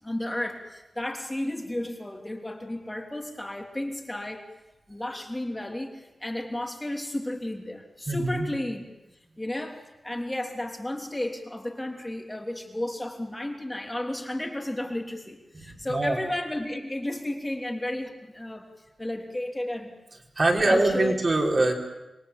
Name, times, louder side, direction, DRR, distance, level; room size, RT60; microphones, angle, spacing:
voice 1, 0.0-4.5 4.9-8.8 9.4-18.7 19.0-19.9 20.6-21.2, left 1 dB, 15° left, 2 dB, 3.2 m, -33 dB
voice 2, 8.1-8.5 15.5-16.2 20.4-21.7, right 2 dB, 40° right, 0 dB, 4.7 m, -23 dB
27.0 x 21.5 x 7.4 m, 0.99 s
wide cardioid pair, 115°, 0 cm